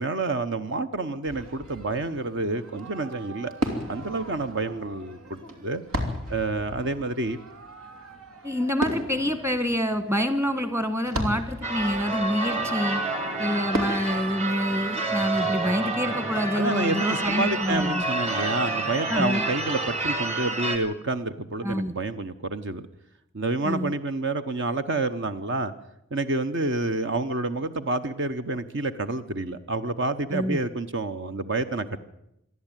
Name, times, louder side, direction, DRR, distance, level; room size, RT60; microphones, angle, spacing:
voice 1, 0.0-3.5 3.9-5.8 6.3-7.4 16.5-22.8 23.3-25.7 26.1-32.0, right 2 dB, 60° right, 10 dB, 1.0 m, -28 dB
Fireworks, 1.2-15.5, equal, 85° right, 3.1 m, -36 dB
voice 2, 8.4-13.0 13.4-18.0 19.1-19.4 21.6-21.9 23.6-23.9 30.3-30.6, left 1 dB, 10° right, 10 dB, 1.5 m, -27 dB
Church bell / Car / Alarm, 11.6-20.8, right 2 dB, 30° right, 2.6 m, -29 dB
27.0 x 11.0 x 9.1 m, 0.81 s
head